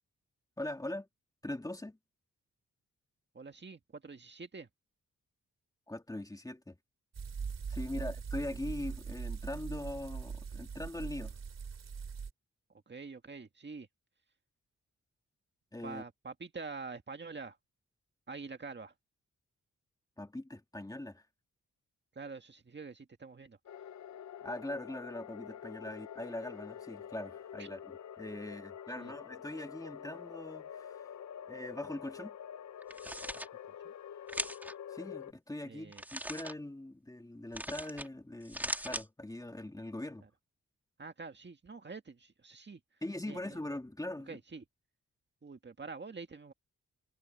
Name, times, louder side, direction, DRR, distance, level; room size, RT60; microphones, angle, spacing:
voice 1, 0.6-1.1 1.4-2.0 5.9-6.8 7.7-11.4 15.7-16.0 20.2-21.2 24.4-31.1 31.5-32.4 34.9-40.3 43.0-44.4, left 1 dB, 10° left, 2.1 m, -41 dB
voice 2, 3.3-4.7 7.9-8.0 12.9-13.9 15.8-17.6 18.3-18.9 22.2-23.6 25.8-25.9 27.6-27.7 29.0-29.1 33.3-33.5 33.8-33.9 35.6-36.0 41.0-42.8 43.3-43.6 44.3-44.6 45.4-46.5, right 4 dB, 35° right, 1.9 m, -46 dB
sound 1, 7.1-12.3, right 6 dB, 55° right, 3.2 m, -41 dB
sound 2, 23.7-35.3, left 9 dB, 65° left, 0.6 m, -47 dB
sound 3, 32.8-33.5 34.3-34.7 35.9-36.5 37.5-38.1 38.4-39.0, right 1 dB, 5° right, 2.2 m, -39 dB
wide cardioid pair, 105°, 31 cm